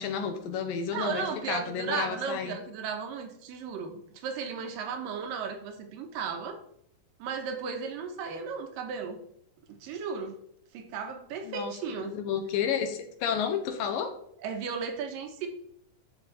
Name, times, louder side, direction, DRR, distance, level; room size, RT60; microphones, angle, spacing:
voice 1, 0.0-2.6 11.4-11.7 12.0-14.1, left 7 dB, 75° left, 6 dB, 2.5 m, -31 dB
voice 2, 0.9-6.6 7.2-9.2 9.7-10.3 10.7-12.2 14.4-15.5, right 6 dB, 70° right, 5 dB, 2.6 m, -35 dB
11.5 x 4.7 x 4.0 m, 0.70 s
omnidirectional pair, 4.3 m